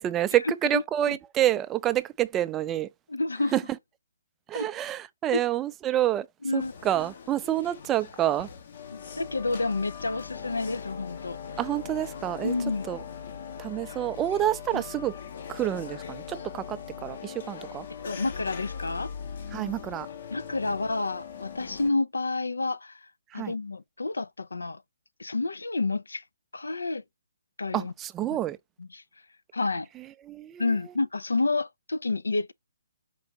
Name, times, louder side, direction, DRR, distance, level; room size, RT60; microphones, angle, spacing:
voice 1, 0.0-2.9 3.5-3.6 4.5-6.3 6.5-8.5 11.6-12.5 12.9-13.0 13.6-15.2 15.5-17.9 19.5-20.1 23.3-23.5 27.7-28.6 30.0-30.6, right 12 dB, 15° right, 0.3 m, -28 dB
voice 2, 0.7-1.2 3.1-3.5 4.5-4.7 5.3-5.4 6.4-6.7 8.9-11.4 12.4-12.8 14.7-14.8 18.0-19.1 20.3-23.0 23.3-24.8 25.2-26.2 26.5-27.0 27.6-27.9 28.8-29.0 29.5-29.9 30.6-32.5, left 3 dB, 80° left, 0.3 m, -29 dB
sound 1, 6.6-21.9, left 7 dB, 55° left, 0.6 m, -40 dB
4.5 x 2.4 x 3.0 m
figure-of-eight pair, 140°, 0 cm